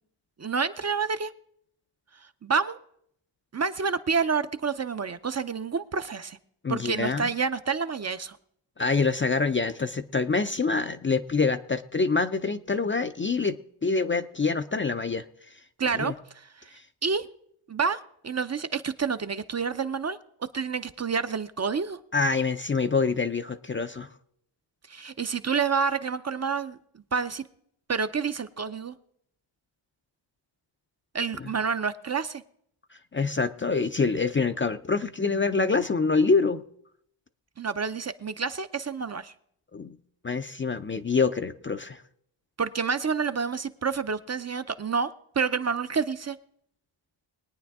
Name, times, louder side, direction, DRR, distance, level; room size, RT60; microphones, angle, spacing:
voice 1, 0.4-1.3 2.4-2.8 3.5-6.4 6.7-8.4 15.8-16.7 17.0-17.3 17.7-18.0 18.2-22.0 24.9-26.8 27.1-27.5 27.9-28.9 31.1-32.4 37.6-39.3 42.6-45.1 45.4-46.4, right 5 dB, 35° right, 11 dB, 0.5 m, -28 dB
voice 2, 6.6-7.3 8.8-15.2 15.9-16.1 16.7-16.8 22.1-24.1 31.3-31.5 33.1-36.6 39.7-40.0 40.2-42.0, left 4 dB, 25° left, 9 dB, 0.4 m, -26 dB
21.5 x 9.4 x 3.5 m, 0.71 s
wide cardioid pair, 100°, 48 cm